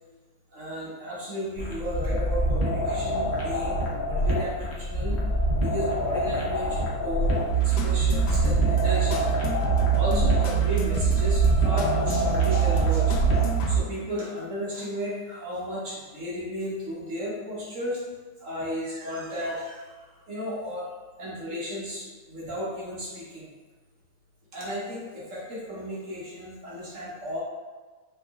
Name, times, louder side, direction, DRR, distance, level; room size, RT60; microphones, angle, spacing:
voice 1, 0.5-5.2 5.6-9.3 9.9-13.4 13.7-18.0 18.4-20.9 21.2-23.5 24.5-27.4, equal, 50° right, -7 dB, 1.3 m, -34 dB
sound 1, 1.6-13.6, equal, 50° left, 0.8 m, -27 dB
sound 2, 7.5-14.3, right 9 dB, 75° left, 1.1 m, -24 dB
3.9 x 2.5 x 3.5 m, 1.4 s
omnidirectional pair, 1.9 m